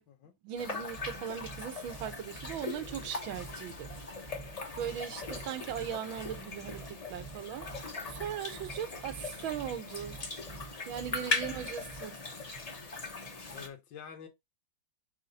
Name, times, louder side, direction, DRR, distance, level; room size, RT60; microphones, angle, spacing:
voice 1, 0.4-3.9 4.7-7.7 8.1-10.2 10.9-12.2, right 9 dB, 90° right, 1.7 m, -39 dB
sound 1, 0.6-13.7, left 3 dB, 35° left, 0.6 m, -40 dB
sound 2, 0.9-12.0, right 5 dB, 15° right, 0.7 m, -48 dB
voice 2, 8.7-9.1 11.2-11.5 13.5-14.3, left 7 dB, 70° left, 1.9 m, -50 dB
4.6 x 4.3 x 5.2 m
omnidirectional pair, 2.1 m